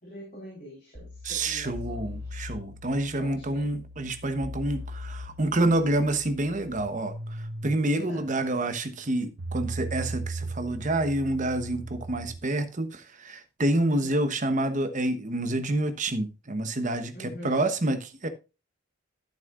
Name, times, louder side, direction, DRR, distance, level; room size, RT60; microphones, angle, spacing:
voice 1, 0.0-2.5 3.2-3.7 7.9-8.2 13.9-14.2 17.1-17.7, left 1 dB, 40° left, 4.1 m, -44 dB
sound 1, 0.9-12.4, right 1 dB, 55° right, 1.0 m, -39 dB
voice 2, 1.2-18.3, right 1 dB, 35° right, 1.0 m, -28 dB
12.5 x 7.3 x 2.5 m
head